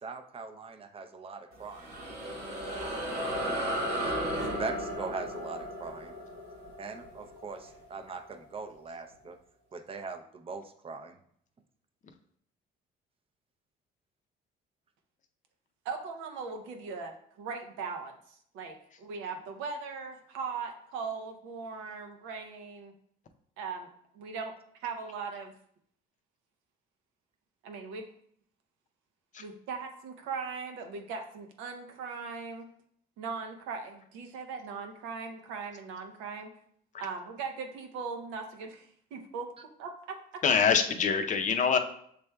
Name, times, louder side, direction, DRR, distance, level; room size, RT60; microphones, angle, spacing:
voice 1, 0.0-1.9 3.4-3.7 4.0-6.1 6.8-9.4 9.7-11.2, right 4 dB, 30° right, 6 dB, 0.5 m, -41 dB
sound 1, 1.5-8.3, equal, 70° right, 1.3 m, -35 dB
voice 2, 15.8-22.9 23.6-23.9 24.1-24.5 24.8-25.5 27.6-28.1 29.4-32.6 33.2-36.5 37.0-38.9 39.1-39.5 39.8-39.9, right 5 dB, 85° right, 4 dB, 0.7 m, -39 dB
voice 3, 40.4-41.8, left 6 dB, 40° left, 6 dB, 0.5 m, -25 dB
6.7 x 3.3 x 2.2 m, 0.65 s
supercardioid pair, 85°, 19 cm